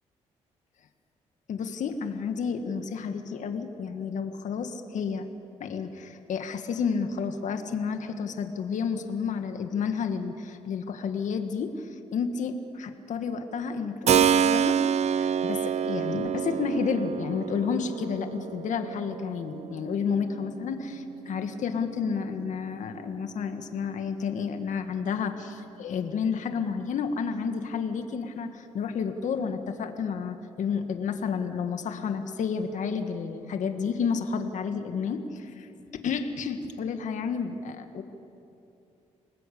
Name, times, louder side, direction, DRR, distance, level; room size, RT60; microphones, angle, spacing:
voice 1, 1.5-5.3 5.6-14.8 15.2-35.7 36.0-38.0, left 6 dB, 70° left, 6 dB, 1.9 m, -31 dB
Keyboard (musical), 14.1-22.7, right 8 dB, 55° right, 0.6 m, -28 dB
28.0 x 19.5 x 8.6 m, 2.7 s
cardioid pair, 75°, 13 cm